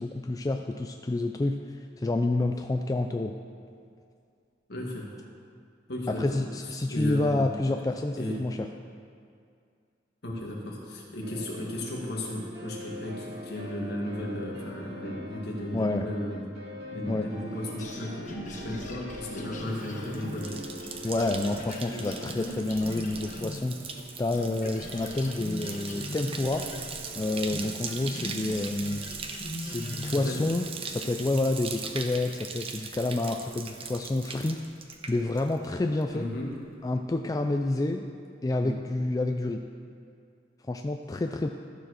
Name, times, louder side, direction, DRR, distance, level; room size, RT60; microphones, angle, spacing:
voice 1, 0.0-3.3 6.1-8.7 15.7-16.1 17.1-17.2 21.0-26.6 27.2-29.0 29.6-34.6 35.1-36.3 36.8-38.0 38.4-39.6 40.7-41.5, left 2 dB, 20° left, 4 dB, 0.3 m, -29 dB
voice 2, 4.7-5.2 5.9-6.3 6.9-7.5 8.2-8.4 10.2-16.4 16.9-20.6 29.9-30.4 36.1-36.5 38.6-38.7, left 1 dB, 60° left, -2 dB, 1.8 m, -35 dB
sound 1, 11.2-28.8, left 1 dB, 65° right, 1.7 m, -45 dB
sound 2, 17.8-24.1 24.3-30.6, left 1 dB, 45° left, 1.1 m, -40 dB
Bathtub (filling or washing), 19.6-35.7 36.0-36.5, right 5 dB, 30° right, 0.7 m, -40 dB
13.5 x 4.8 x 6.4 m, 2.3 s
head